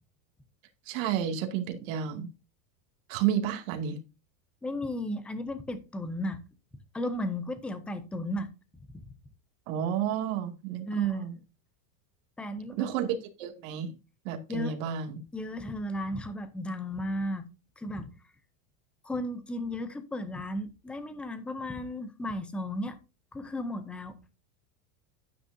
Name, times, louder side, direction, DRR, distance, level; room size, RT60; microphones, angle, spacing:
voice 1, 0.9-2.3 3.1-4.0 9.7-11.4 12.8-14.0 14.2-15.2, right 9 dB, 55° right, 2.3 m, -31 dB
voice 2, 4.6-6.4 6.9-8.5 8.9-9.1 10.9-11.3 12.4-12.9 14.5-14.8 15.3-17.5 17.8-18.2 19.0-23.0 23.3-24.2, left 1 dB, 5° left, 0.4 m, -34 dB
11.0 x 9.3 x 2.7 m
supercardioid pair, 160°, 46 cm